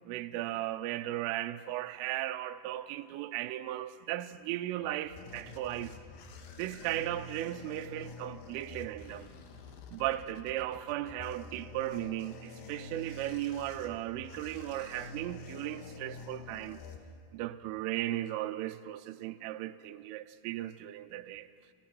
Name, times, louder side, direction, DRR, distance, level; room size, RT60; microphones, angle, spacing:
voice 1, 0.1-5.9 6.6-9.3 9.9-16.8 17.3-21.5, right 14 dB, 80° right, 3.1 m, -36 dB
sound 1, 4.6-17.5, left 4 dB, 75° left, 2.1 m, -48 dB
29.0 x 15.5 x 6.0 m
omnidirectional pair, 5.9 m